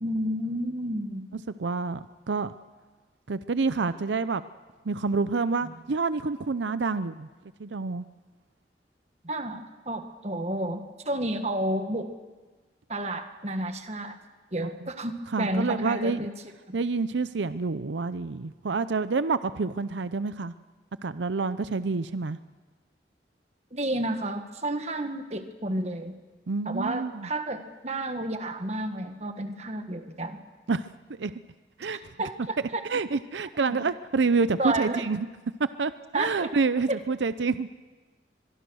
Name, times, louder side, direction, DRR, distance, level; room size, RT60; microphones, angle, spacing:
voice 1, 0.0-1.2 5.6-5.7 9.2-12.1 12.9-14.2 14.5-16.3 16.7-16.8 23.7-26.1 26.6-30.4 31.9-32.8 33.7-33.8 34.6-35.0 36.1-36.5 36.9-37.0, right 1 dB, 40° right, 7 dB, 1.6 m, -31 dB
voice 2, 1.3-2.5 3.3-4.4 4.9-7.3 7.6-8.1 14.8-14.9 15.3-16.3 16.7-20.5 21.0-22.4 26.5-27.3 30.7-30.9 31.2-31.3 31.8-32.0 32.9-35.3 35.6-37.7, right 4 dB, 90° right, 13 dB, 0.6 m, -28 dB
24.0 x 23.0 x 6.4 m, 1.3 s
head